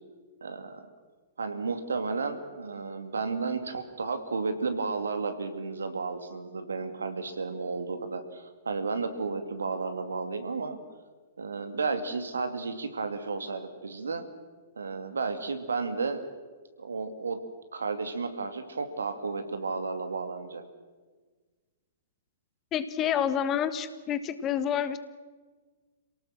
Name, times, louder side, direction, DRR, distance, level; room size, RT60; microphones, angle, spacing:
voice 1, 0.4-0.9 1.4-10.8 11.4-14.2 14.8-16.2 16.8-17.4 17.7-20.6, right 4 dB, 75° right, 8 dB, 2.5 m, -32 dB
voice 2, 22.7-25.0, left 9 dB, 25° left, 12 dB, 1.4 m, -28 dB
27.5 x 18.0 x 7.6 m, 1.4 s
figure-of-eight pair, 110°, 0 cm